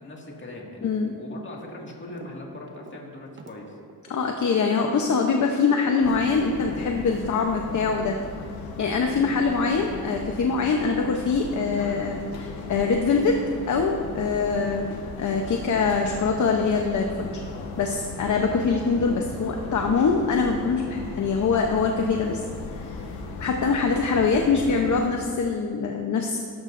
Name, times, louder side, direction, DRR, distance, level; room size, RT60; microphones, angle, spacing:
voice 1, 0.0-3.8 14.3-14.5, left 2 dB, 30° left, -2 dB, 2.1 m, -40 dB
voice 2, 0.8-1.1 4.1-8.2 8.8-13.4 13.7-17.3 17.8-22.4 22.7-23.0 23.4-26.4, left 4 dB, 50° left, 2 dB, 0.9 m, -24 dB
sound 1, 2.1-2.4 2.6-6.5 6.8-7.7, right 3 dB, 30° right, 1.0 m, -46 dB
sound 2, 6.0-25.1, left 3 dB, 70° left, 1.5 m, -37 dB
17.0 x 13.5 x 2.6 m, 2.3 s
cardioid pair, 130°, 37 cm